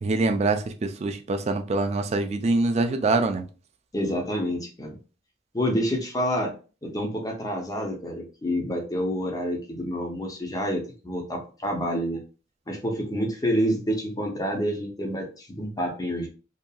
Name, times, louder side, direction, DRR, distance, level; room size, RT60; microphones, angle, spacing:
voice 1, 0.0-3.4, right 3 dB, 35° right, 7 dB, 0.3 m, -24 dB
voice 2, 3.9-5.0 5.5-6.5 6.8-12.2 12.7-16.3, equal, 20° left, 1 dB, 0.6 m, -28 dB
2.7 x 2.3 x 2.2 m, 0.35 s
head